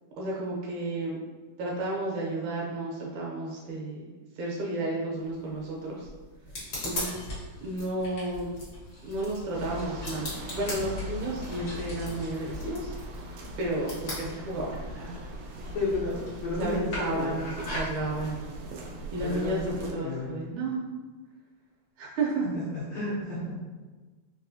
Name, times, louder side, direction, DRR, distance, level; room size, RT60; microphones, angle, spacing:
voice 1, 0.2-1.2 1.6-4.0 4.4-6.1 6.8-7.3 7.6-8.5 9.1-12.9 13.6-15.3 16.6-18.5 19.1-19.6 19.9-20.9 22.0-22.4, right 2 dB, 75° right, -3 dB, 2.0 m, -32 dB
sound 1, 5.2-15.0, left 1 dB, 55° left, 1.1 m, -41 dB
sound 2, 6.6-18.0, equal, 90° left, 0.8 m, -44 dB
sound 3, 9.5-19.9, equal, 90° right, 1.5 m, -40 dB
voice 2, 15.7-17.4 19.2-20.4 22.5-23.6, left 2 dB, 70° left, -8 dB, 1.6 m, -32 dB
4.8 x 3.1 x 2.6 m, 1.3 s
omnidirectional pair, 3.7 m